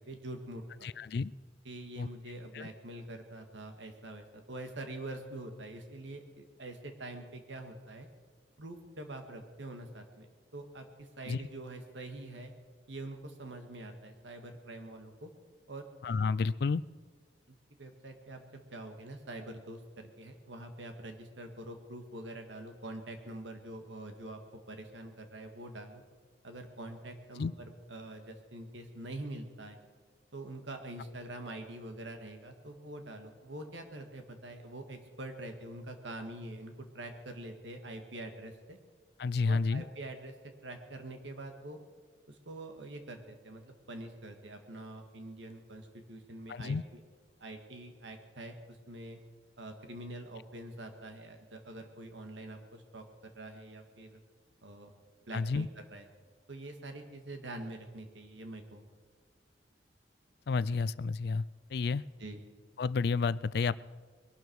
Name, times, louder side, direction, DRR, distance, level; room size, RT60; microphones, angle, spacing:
voice 1, 0.1-0.9 1.7-8.1 8.6-12.5 12.9-15.3 15.7-15.8 17.5-24.4 24.7-26.0 26.4-27.5 27.9-29.8 30.3-38.8 39.5-41.8 42.3-47.0 47.4-49.2 49.6-54.2 54.6-54.9 55.3-56.1 56.5-58.9 62.2-62.4, right 1 dB, 80° right, 5 dB, 1.9 m, -45 dB
voice 2, 0.8-1.3 2.0-2.1 2.5-2.7 11.3-11.4 16.0-16.8 27.4-27.5 39.2-39.8 46.5-46.8 55.3-55.7 60.5-61.4 61.7-62.0 62.8-63.8, left 4 dB, 60° left, 19 dB, 0.4 m, -30 dB
21.5 x 12.0 x 4.7 m, 1.5 s
head